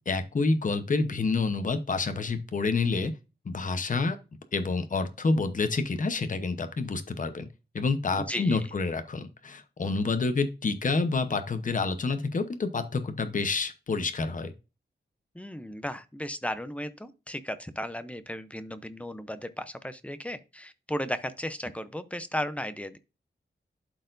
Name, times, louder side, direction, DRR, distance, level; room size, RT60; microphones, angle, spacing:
voice 1, 0.1-3.1 3.4-4.2 4.5-7.5 7.7-14.5, left 3 dB, 45° left, 0.8 m, -28 dB
voice 2, 8.2-8.7 15.3-23.0, equal, 5° left, 0.6 m, -35 dB
11.5 x 4.4 x 2.5 m
wide cardioid pair, 135°, 19 cm